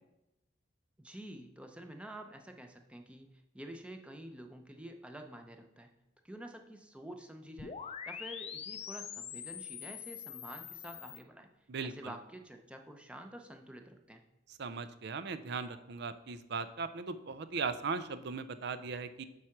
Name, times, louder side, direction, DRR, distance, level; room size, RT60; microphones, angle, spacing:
voice 1, 1.0-5.9 6.2-7.8 8.1-11.5 11.8-14.2, right 1 dB, 5° right, 4 dB, 0.6 m, -49 dB
sound 1, 7.6-11.2, left 8 dB, 35° left, 0.5 m, -44 dB
voice 2, 14.6-19.2, right 4 dB, 60° right, 12 dB, 0.5 m, -38 dB
7.3 x 4.8 x 5.8 m, 0.90 s
head